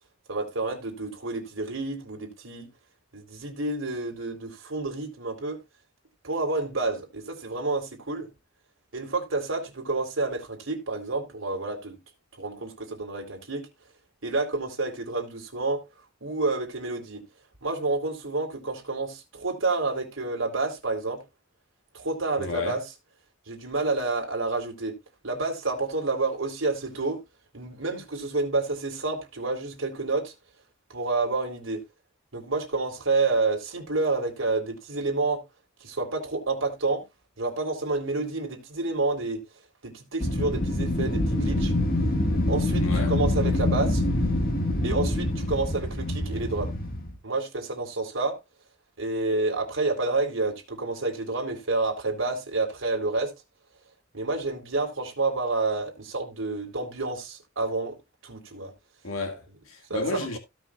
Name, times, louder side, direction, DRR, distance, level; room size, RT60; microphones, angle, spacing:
voice 1, 0.3-2.7 3.1-5.6 6.2-8.3 8.9-12.0 12.4-13.7 14.2-15.8 16.2-17.2 17.6-21.2 21.9-22.8 23.5-24.9 25.2-27.2 27.5-30.3 30.9-31.8 32.3-35.4 35.8-37.0 37.4-39.4 39.8-41.7 42.5-44.0 44.8-46.7 47.2-48.4 49.0-53.3 54.1-58.0 58.2-58.7 59.9-60.3, right 3 dB, 70° right, 3.8 m, -29 dB
voice 2, 22.4-22.8 42.8-43.2 59.0-60.4, left 3 dB, 80° left, 1.9 m, -32 dB
Wind, 40.2-47.1, left 1 dB, 45° left, 1.8 m, -25 dB
17.0 x 6.1 x 2.4 m
head